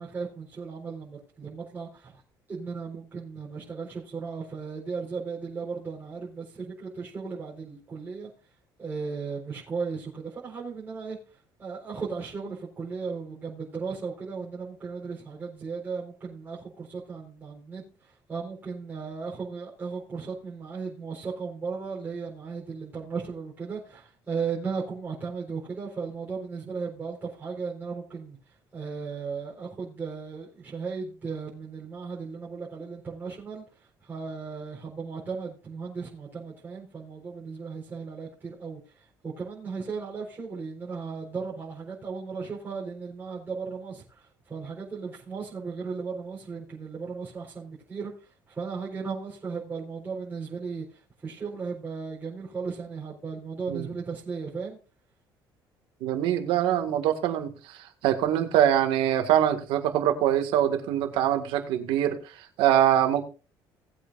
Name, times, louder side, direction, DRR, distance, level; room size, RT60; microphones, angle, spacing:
voice 1, 0.0-2.2 2.5-8.3 8.8-11.2 11.6-17.8 18.3-28.4 28.7-33.6 34.0-38.8 39.2-48.1 48.5-50.8 51.2-54.8, right 5 dB, 25° right, 4.4 m, -36 dB
voice 2, 56.0-62.2 62.6-63.2, right 11 dB, 85° right, 1.9 m, -24 dB
19.0 x 8.5 x 2.6 m
cardioid pair, 130°, 8 cm